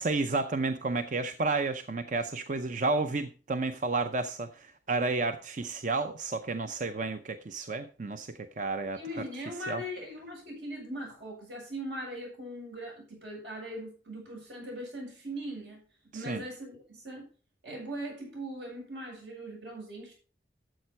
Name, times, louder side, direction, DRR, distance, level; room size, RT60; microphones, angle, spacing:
voice 1, 0.0-9.0 9.7-9.8 16.3-16.4, right 3 dB, 45° right, 9 dB, 0.6 m, -31 dB
voice 2, 8.9-15.8 16.1-17.3 17.6-20.1, right 1 dB, 75° right, -1 dB, 7.6 m, -40 dB
12.5 x 7.6 x 4.3 m, 0.35 s
head